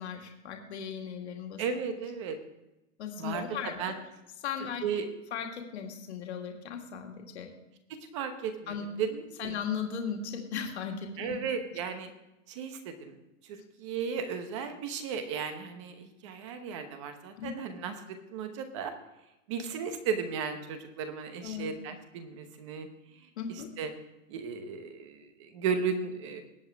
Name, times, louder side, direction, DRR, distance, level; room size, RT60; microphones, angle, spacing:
voice 1, 0.0-1.6 3.0-3.7 4.4-4.8 5.3-7.5 8.7-8.8 9.4-11.4 17.4-17.5 21.4-21.7 23.4-23.7, left 7 dB, 55° left, 2 dB, 2.1 m, -37 dB
voice 2, 1.6-2.4 3.2-4.0 4.8-5.0 8.1-9.6 11.2-12.1 12.5-13.2 13.4-18.9 19.5-22.9 23.1-23.9 24.3-26.4, right 6 dB, 25° right, 8 dB, 0.9 m, -35 dB
19.5 x 8.0 x 3.5 m, 0.94 s
hypercardioid pair, 175°, 40 cm